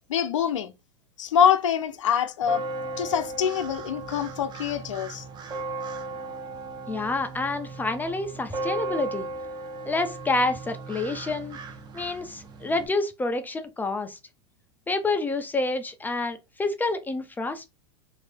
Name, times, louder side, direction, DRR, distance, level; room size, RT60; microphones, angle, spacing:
voice 1, 0.1-0.7 1.2-2.6 3.0-5.2, left 8 dB, 85° left, 0.6 m, -24 dB
sound 1, 2.4-12.9, right 2 dB, 30° right, 0.7 m, -36 dB
voice 2, 6.9-9.3 9.9-11.6 11.9-14.2 14.9-17.7, left 2 dB, 10° left, 0.5 m, -28 dB
3.2 x 2.7 x 3.4 m
hypercardioid pair, 115°, 15 cm